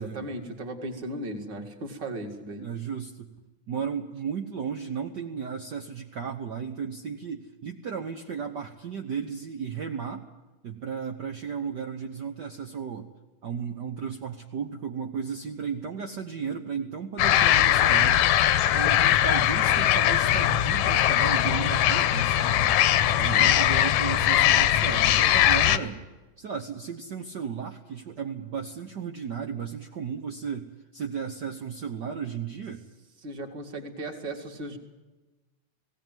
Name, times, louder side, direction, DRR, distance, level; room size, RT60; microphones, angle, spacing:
voice 1, 0.0-2.7 23.1-23.8 25.7-25.9 33.2-34.8, right 1 dB, 35° right, 3 dB, 2.8 m, -37 dB
voice 2, 2.6-3.3 3.7-10.3 10.6-13.1 13.4-18.3 18.7-22.7 23.2-26.0 26.4-32.8, right 6 dB, 65° right, 3 dB, 1.0 m, -34 dB
sound 1, 17.2-25.8, left 12 dB, 75° left, 2.1 m, -21 dB
18.5 x 18.0 x 9.2 m, 1.2 s
omnidirectional pair, 3.5 m